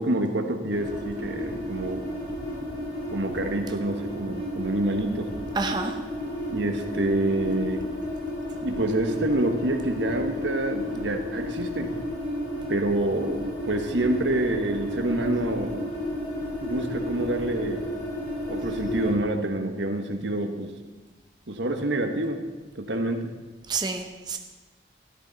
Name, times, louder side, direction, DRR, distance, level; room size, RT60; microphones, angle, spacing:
voice 1, 0.0-2.1 3.1-5.3 6.5-7.8 8.6-11.9 12.7-15.9 16.6-17.8 18.5-20.7 21.5-22.4 22.7-23.3, right 1 dB, 85° right, 5 dB, 1.3 m, -27 dB
sound 1, 0.7-19.1, left 1 dB, 70° left, 4.5 m, -32 dB
voice 2, 5.5-6.0 23.7-24.4, right 4 dB, 25° right, 5 dB, 0.7 m, -28 dB
13.5 x 12.0 x 4.1 m, 1.2 s
head